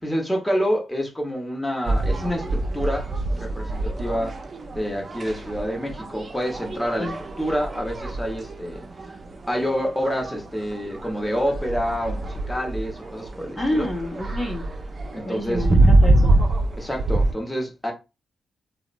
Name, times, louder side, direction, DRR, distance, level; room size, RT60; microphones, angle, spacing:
voice 1, 0.0-3.1 3.4-4.3 4.7-7.1 7.4-8.8 9.5-13.9 15.1-15.7 16.8-17.9, equal, 10° left, 1.0 m, -27 dB
sound 1, 1.8-17.3, right 2 dB, 45° right, 0.5 m, -25 dB
voice 2, 13.6-14.6 15.2-16.3, left 1 dB, 35° left, 0.9 m, -28 dB
2.7 x 2.1 x 2.5 m
hypercardioid pair, 40°, 0 cm